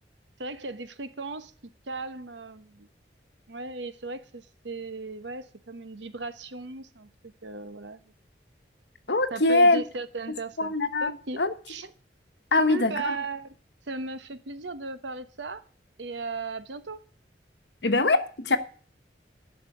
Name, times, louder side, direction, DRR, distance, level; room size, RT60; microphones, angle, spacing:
voice 1, 0.4-1.5 1.9-2.9 3.5-7.1 7.4-8.0 9.3-10.7 11.0-11.4 11.7-11.9 12.6-13.5 13.9-15.6 16.0-17.0, right 3 dB, 80° right, 1.1 m, -36 dB
voice 2, 9.1-9.8 10.6-11.1 11.4-11.5 12.5-13.2 17.8-18.6, left 2 dB, 70° left, 1.2 m, -22 dB
11.5 x 5.9 x 8.4 m
head